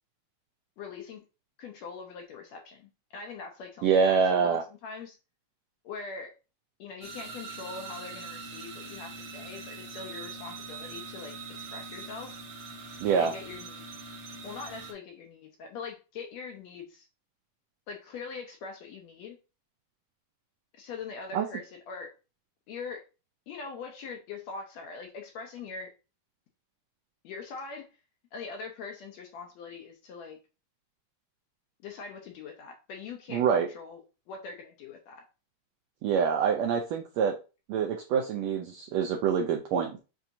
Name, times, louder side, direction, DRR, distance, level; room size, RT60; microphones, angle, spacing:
voice 1, 0.8-1.2 1.6-5.2 5.8-6.3 6.8-12.3 13.2-13.8 14.4-17.1 17.9-19.4 20.7-22.1 22.7-23.1 23.5-25.9 27.2-27.9 28.3-30.4 31.8-34.0 34.3-35.2, left 5 dB, 75° left, 2 dB, 1.8 m, -42 dB
voice 2, 3.8-4.6 13.0-13.3 21.3-21.5 33.3-33.7 36.0-37.3 37.7-40.0, right 6 dB, 85° right, 2 dB, 1.5 m, -25 dB
sound 1, 7.0-14.9, right 4 dB, 65° right, 1.6 m, -42 dB
7.1 x 2.7 x 2.6 m, 0.31 s
omnidirectional pair, 3.6 m